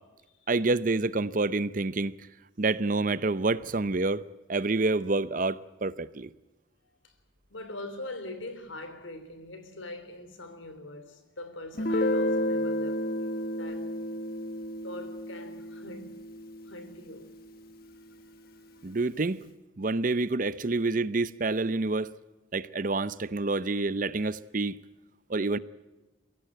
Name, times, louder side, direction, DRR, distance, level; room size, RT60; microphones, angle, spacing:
voice 1, 0.5-2.1 2.6-4.2 4.5-6.3 18.8-19.4 19.8-22.1 22.5-24.8 25.3-25.6, right 3 dB, 40° right, 0.7 m, -28 dB
voice 2, 7.5-13.3 13.6-13.9 14.8-16.3 16.7-17.3 17.9-18.9, left 1 dB, 75° left, 3.4 m, -43 dB
Guitar, 11.8-17.3, left 1 dB, 50° left, 1.3 m, -31 dB
23.0 x 16.5 x 9.0 m
head